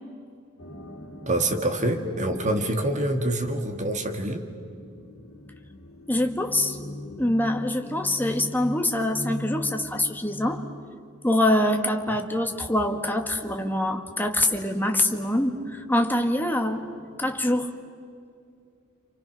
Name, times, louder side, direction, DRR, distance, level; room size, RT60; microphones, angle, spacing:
sound 1, 0.6-17.6, left 1 dB, 70° left, 2.7 m, -42 dB
voice 1, 1.3-4.5, right 1 dB, 35° right, 5 dB, 2.0 m, -26 dB
voice 2, 6.1-6.8 7.2-10.6 11.2-16.8 17.2-17.7, left 1 dB, 10° left, 4 dB, 1.7 m, -24 dB
29.5 x 27.5 x 6.2 m, 2.4 s
head